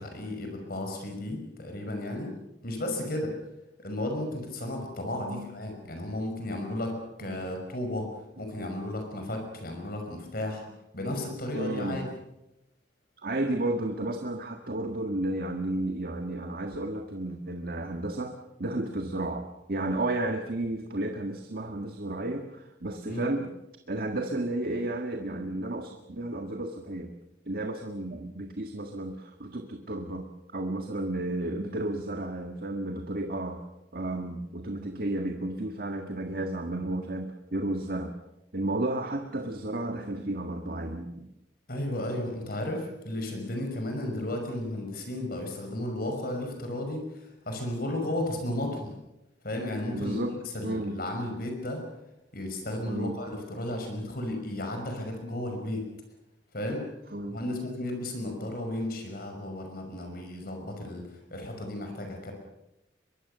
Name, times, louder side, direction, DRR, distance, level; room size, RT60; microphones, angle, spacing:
voice 1, 0.0-2.3 2.6-3.3 3.8-8.1 8.4-10.6 10.9-12.1 23.0-23.2 41.7-48.9 49.4-50.2 50.5-51.8 52.3-55.9 56.5-56.9 57.2-62.3, left 1 dB, 55° left, 3 dB, 5.8 m, -34 dB
voice 2, 11.5-12.0 13.2-18.3 18.6-23.5 23.9-27.1 27.5-33.6 33.9-38.2 38.5-41.3 49.9-50.4 50.6-51.0 52.9-53.1 57.1-57.4, right 1 dB, 55° right, 5 dB, 1.7 m, -32 dB
23.5 x 23.0 x 6.9 m, 0.90 s
head